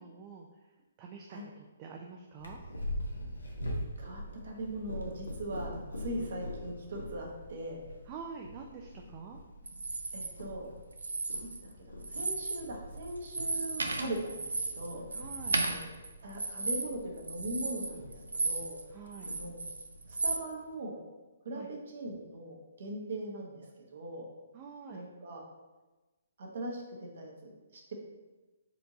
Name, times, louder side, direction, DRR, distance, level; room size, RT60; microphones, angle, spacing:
voice 1, 0.0-2.6 8.1-9.4 15.1-15.6 18.9-19.3 21.5-21.7 24.5-25.0, right 5 dB, 30° right, 1 dB, 0.4 m, -47 dB
Purr, 2.4-20.3, left 1 dB, 85° left, 0.9 m, -44 dB
voice 2, 4.0-7.8 10.1-10.7 11.8-15.0 15.6-15.9 16.2-18.8 19.2-19.6 20.1-21.0 21.4-23.7 23.9-24.3 24.9-25.4 26.4-27.9, right 1 dB, 60° right, 0 dB, 1.0 m, -40 dB
sound 1, 9.7-10.3 10.9-11.7 12.0-12.7 13.0-18.8 19.1-20.4, right 3 dB, 80° right, 0.5 m, -34 dB
4.4 x 2.6 x 4.0 m, 1.2 s
figure-of-eight pair, 135°, 0 cm